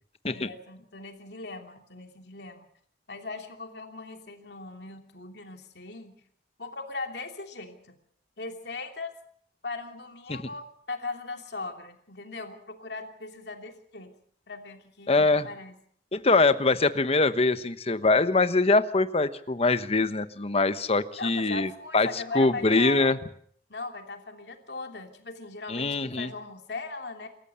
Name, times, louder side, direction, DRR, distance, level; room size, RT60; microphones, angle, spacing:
voice 1, 0.3-2.7 3.1-6.2 6.6-8.0 8.4-9.1 9.6-14.2 14.5-15.7 21.2-23.1 23.7-27.3, left 3 dB, 70° left, 4 dB, 2.9 m, -39 dB
voice 2, 15.1-15.5 16.1-23.2 25.7-26.3, left 3 dB, 35° left, 12 dB, 1.1 m, -23 dB
27.5 x 14.5 x 7.0 m, 0.64 s
head